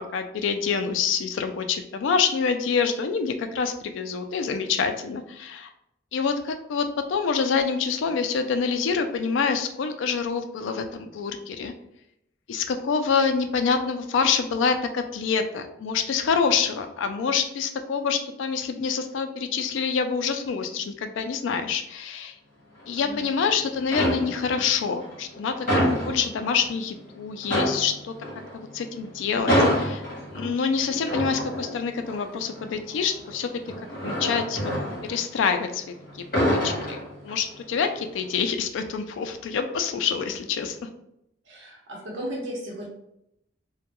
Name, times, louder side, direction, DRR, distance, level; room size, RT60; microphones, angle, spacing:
voice 1, 0.0-5.7 6.1-11.7 12.5-22.3 22.9-28.1 28.5-30.0 30.3-33.5 34.0-34.6 35.1-35.8 36.4-40.8, left 6 dB, 75° left, 8 dB, 0.3 m, -26 dB
sound 1, 22.8-23.5 23.8-24.7 25.0-26.8 27.1-27.2 27.4-35.8 36.1-37.6 37.9-38.2, equal, 45° left, 1.0 m, -27 dB
voice 2, 41.5-42.9, equal, 70° right, -2 dB, 0.8 m, -35 dB
2.2 x 2.2 x 2.9 m, 0.80 s
head